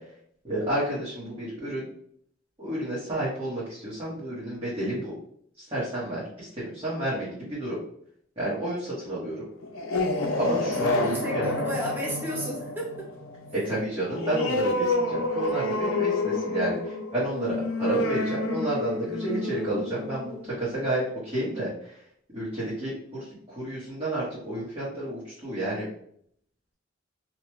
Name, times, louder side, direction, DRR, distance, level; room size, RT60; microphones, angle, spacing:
voice 1, 0.4-1.9 2.6-5.1 5.6-7.8 8.4-9.4 10.4-11.5 13.5-22.0 22.3-25.9, right 1 dB, 25° right, -10 dB, 1.1 m, -30 dB
sound 1, 9.6-20.8, left 2 dB, 85° left, 0.6 m, -29 dB
voice 2, 10.8-13.1, right 1 dB, 10° right, -6 dB, 0.9 m, -33 dB
3.0 x 2.3 x 3.0 m, 0.65 s
head